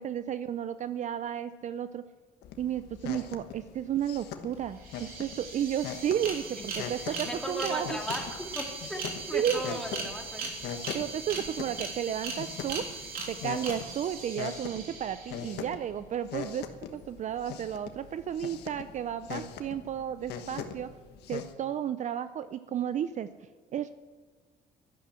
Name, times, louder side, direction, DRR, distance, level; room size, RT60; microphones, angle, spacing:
voice 1, 0.0-2.0 2.6-8.0 9.3-9.8 10.9-12.8 13.3-16.7 16.9-20.9 21.3-23.9, right 9 dB, 45° right, 13 dB, 0.5 m, -33 dB
sound 1, 2.4-21.5, left 8 dB, 80° left, 1.3 m, -42 dB
sound 2, 4.5-4.6 4.8-15.6, right 4 dB, 60° right, 3.4 m, -39 dB
voice 2, 7.0-9.0 9.3-10.5, left 1 dB, 5° left, 1 dB, 2.6 m, -37 dB
11.5 x 11.5 x 7.5 m, 1.5 s
cardioid pair, 110°, 17 cm